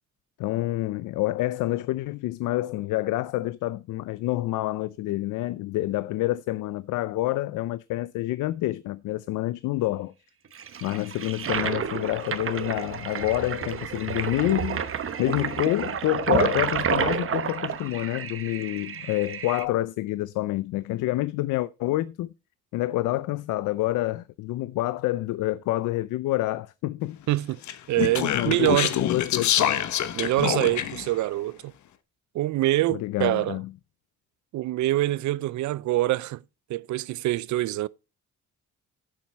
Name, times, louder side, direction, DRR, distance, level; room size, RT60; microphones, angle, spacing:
voice 1, 0.4-10.1 10.8-14.9 15.2-22.3 22.7-27.2 28.3-28.7 29.0-29.8 32.9-33.7, left 17 dB, 85° left, 0.5 m, -28 dB
Toilet flush, 10.5-19.6, right 8 dB, 45° right, 1.1 m, -30 dB
voice 2, 27.3-27.6 27.9-28.9 30.1-31.7 32.3-33.6 34.5-36.4 36.7-37.9, right 16 dB, 70° right, 0.5 m, -25 dB
Speech, 27.6-31.1, left 10 dB, 70° left, 1.1 m, -26 dB
9.2 x 7.6 x 4.2 m
cardioid pair, 90°, 30 cm